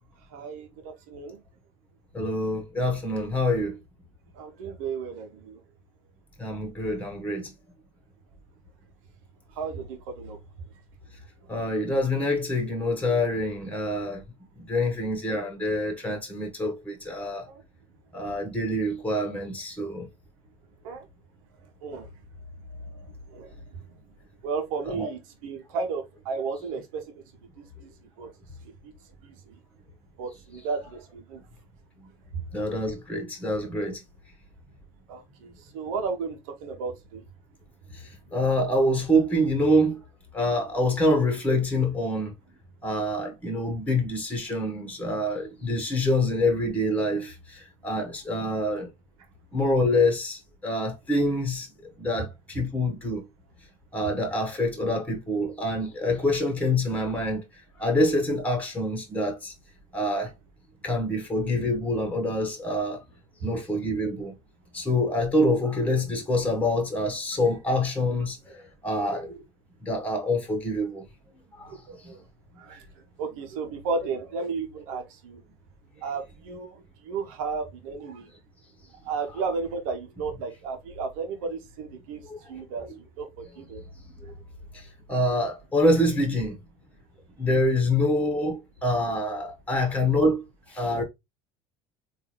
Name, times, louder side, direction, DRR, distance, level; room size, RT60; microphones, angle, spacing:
voice 1, 0.3-1.4 4.3-5.6 9.5-10.4 16.0-16.2 17.5-17.6 20.8-21.1 21.8-22.1 22.7-23.8 24.4-27.2 27.6-27.9 28.2-28.3 28.8-28.9 29.2-29.5 30.2-31.4 32.3-32.4 35.1-37.2 65.4-65.5 71.7-72.2 72.6-72.9 73.2-75.4 76.0-78.3 79.0-82.2 82.5-82.8 83.2-83.8, right 4 dB, 75° right, 1.0 m, -34 dB
voice 2, 2.1-3.8 6.4-7.5 11.5-14.2 14.6-17.4 18.1-20.0 24.8-25.1 32.5-34.0 37.9-40.0 40.3-42.3 42.8-48.9 49.5-51.7 52.0-53.2 53.9-57.4 57.8-59.5 59.9-60.3 60.8-63.0 63.4-64.3 64.7-69.4 69.8-71.0 71.5-71.8 72.0-72.1 82.3-82.6 84.2-84.3 84.7-86.6 87.4-90.4 90.7-91.0, left 1 dB, 10° left, 1.4 m, -26 dB
3.6 x 2.7 x 3.0 m
hypercardioid pair, 80°, 17 cm